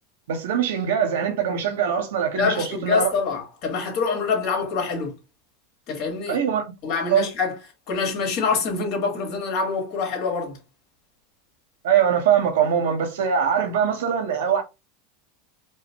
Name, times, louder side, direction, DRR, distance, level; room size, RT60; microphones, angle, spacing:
voice 1, 0.3-3.1 6.3-6.6 7.1-7.3 11.8-14.6, right 8 dB, 80° right, 1.1 m, -22 dB
voice 2, 2.3-5.2 5.9-6.4 6.8-7.6 7.9-10.6, left 5 dB, 50° left, 1.9 m, -25 dB
4.7 x 2.1 x 2.9 m
supercardioid pair, 120°, 0 cm